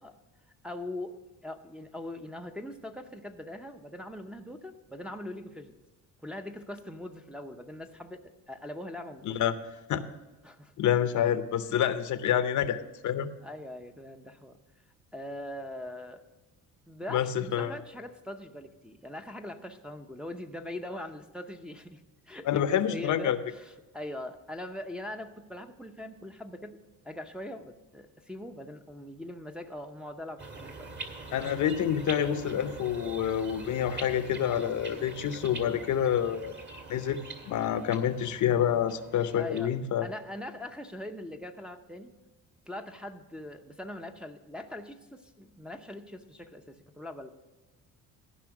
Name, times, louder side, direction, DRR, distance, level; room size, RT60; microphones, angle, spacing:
voice 1, 0.6-1.1 1.4-5.8 6.2-9.4 10.4-10.7 11.2-11.3 11.7-11.8 13.4-14.6 15.1-16.2 16.9-26.8 27.0-30.9 39.4-39.7 40.0-42.1 42.7-47.3, left 1 dB, 5° right, 3 dB, 0.7 m, -41 dB
voice 2, 10.8-13.3 17.1-17.7 22.5-23.4 31.3-36.5 36.9-40.1, left 9 dB, 55° left, 12 dB, 0.7 m, -28 dB
sound 1, 30.4-39.7, right 3 dB, 30° right, 1.7 m, -44 dB
14.0 x 5.5 x 6.0 m, 1.2 s
cardioid pair, 115°, 34 cm